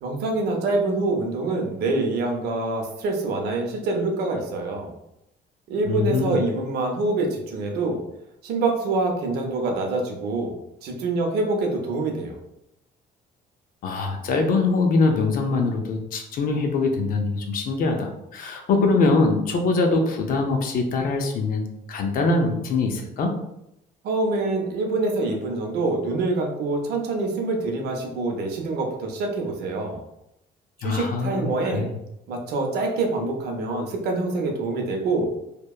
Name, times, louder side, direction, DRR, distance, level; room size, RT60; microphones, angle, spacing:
voice 1, 0.0-4.9 5.7-8.0 8.4-10.5 10.8-12.3 24.0-30.0 30.8-31.9 32.3-35.3, right 3 dB, 70° right, 2 dB, 0.6 m, -25 dB
voice 2, 5.9-6.4 13.8-21.6 21.9-23.3 30.8-31.9, left 3 dB, 55° left, 4 dB, 0.5 m, -23 dB
2.7 x 2.2 x 2.3 m, 0.83 s
cardioid pair, 110°, 17 cm